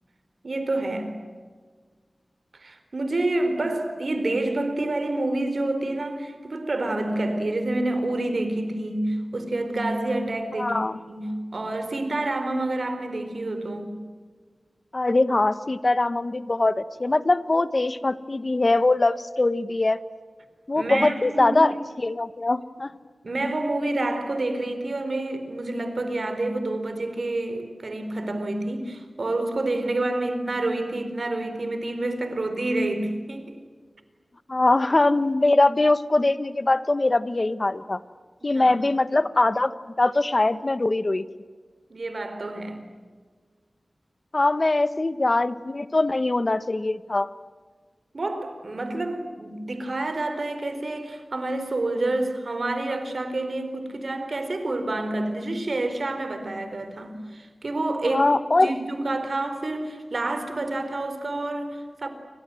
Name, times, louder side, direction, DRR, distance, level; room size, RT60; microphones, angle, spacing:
voice 1, 0.4-1.1 2.5-10.8 11.1-13.9 20.8-21.8 23.2-33.5 38.4-38.8 41.9-42.8 48.1-58.3 58.6-62.1, right 2 dB, 65° right, 4.3 m, -28 dB
voice 2, 10.6-11.0 14.9-20.0 20.7-22.9 34.5-38.0 38.4-41.3 44.3-47.3 58.0-58.7, left 2 dB, 45° left, 1.3 m, -22 dB
29.5 x 25.5 x 7.8 m
wide cardioid pair, 70°, 0 cm